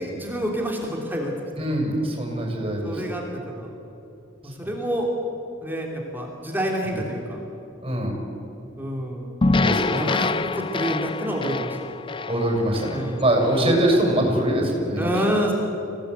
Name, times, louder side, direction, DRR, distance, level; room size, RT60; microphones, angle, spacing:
voice 1, 0.0-1.3 2.8-3.7 4.4-5.1 5.6-7.4 8.8-9.4 9.9-11.8 12.9-13.2 15.0-15.5, equal, 10° right, 0 dB, 2.8 m, -28 dB
voice 2, 1.6-2.9 4.6-4.7 6.8-7.0 7.8-8.1 9.6-10.0 12.3-15.1, right 1 dB, 25° right, -1 dB, 6.3 m, -23 dB
sound 1, 9.4-13.7, left 3 dB, 25° left, 0.5 m, -26 dB
26.5 x 18.0 x 8.2 m, 2.9 s
head